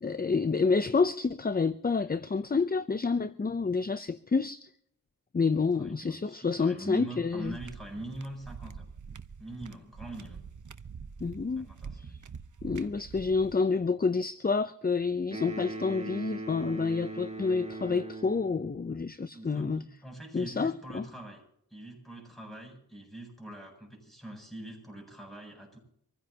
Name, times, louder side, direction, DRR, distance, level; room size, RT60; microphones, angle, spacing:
voice 1, 0.0-4.7 5.3-7.6 11.2-11.7 12.0-12.1 12.6-19.8 20.3-21.0, left 4 dB, 25° left, 0.6 m, -28 dB
voice 2, 5.5-8.8 9.4-10.4 11.6-12.2 19.3-21.4 21.7-25.8, right 1 dB, ahead, 7.9 m, -43 dB
sound 1, 7.4-13.6, right 6 dB, 50° right, 0.9 m, -45 dB
sound 2, 15.3-18.7, right 2 dB, 15° right, 4.7 m, -39 dB
25.5 x 15.5 x 2.9 m
cardioid pair, 55°, 37 cm